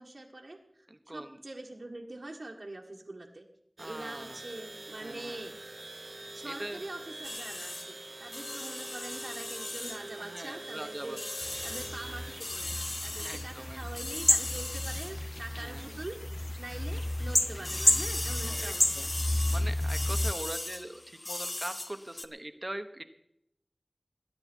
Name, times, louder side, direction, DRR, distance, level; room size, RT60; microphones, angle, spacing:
voice 1, 0.0-3.5 3.8-5.5 6.3-11.2 11.6-16.2 16.6-19.1, right 2 dB, 85° right, -3 dB, 1.5 m, -44 dB
voice 2, 0.9-1.4 3.8-4.4 5.0-5.4 6.5-6.8 10.2-11.2 13.1-13.8 15.6-16.0 18.4-19.1 19.5-23.0, right 1 dB, 35° right, 8 dB, 1.2 m, -42 dB
sound 1, 3.8-12.4, right 2 dB, 65° right, 0.9 m, -45 dB
sound 2, 7.2-16.3 16.6-22.3, left 2 dB, 65° left, 0.9 m, -39 dB
sound 3, 11.4-20.3, left 1 dB, 35° left, 0.5 m, -31 dB
22.0 x 9.6 x 4.5 m, 0.75 s
wide cardioid pair, 45°, 0 cm